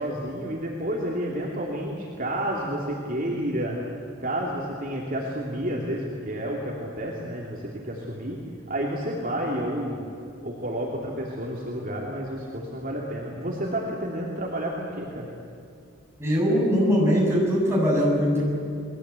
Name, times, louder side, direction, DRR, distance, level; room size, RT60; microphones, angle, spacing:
voice 1, 0.0-3.8 4.2-8.4 8.7-10.1 10.4-15.3, right 1 dB, 40° right, -3 dB, 2.9 m, -30 dB
voice 2, 16.2-18.4, equal, 10° right, -5 dB, 7.4 m, -21 dB
30.0 x 21.0 x 8.4 m, 2.4 s
head